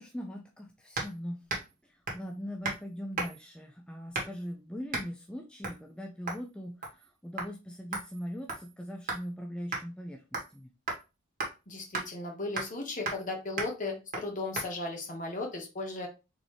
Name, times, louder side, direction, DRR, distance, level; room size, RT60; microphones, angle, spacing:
voice 1, 0.0-1.4 1.8-10.7, equal, 5° left, 1 dB, 0.5 m, -41 dB
sound 1, 1.0-1.2 1.5-1.7 2.1-2.3 2.6-2.8 3.2-3.5 4.1-4.5 4.9-5.1 5.6-5.8 6.3-6.5 6.8-7.1 7.4-7.5 7.9-9.3 9.7-9.8 10.3-10.6 10.9-11.0 11.4-11.5 11.9-12.1 12.6-12.8 13.1-13.3 13.6-13.7 14.1-14.3 14.6-14.7, right 3 dB, 45° right, 1.5 m, -35 dB
voice 2, 11.7-16.1, left 2 dB, 40° left, 2 dB, 1.4 m, -36 dB
4.0 x 3.6 x 3.2 m, 0.28 s
head